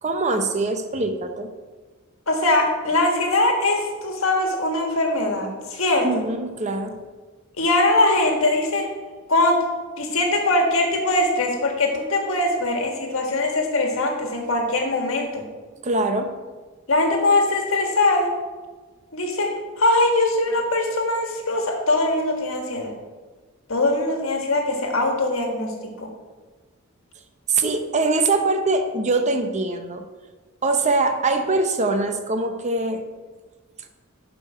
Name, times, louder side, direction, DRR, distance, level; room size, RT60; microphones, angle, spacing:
voice 1, 0.0-1.5 6.0-7.0 15.8-16.4 27.5-30.1 30.6-33.1, right 3 dB, 35° right, 7 dB, 0.7 m, -23 dB
voice 2, 2.3-6.1 7.6-8.9 9.3-9.6 10.0-15.4 16.9-18.3 19.1-22.9 23.7-26.1, left 2 dB, 75° left, 2 dB, 1.6 m, -21 dB
11.0 x 5.1 x 4.8 m, 1.4 s
head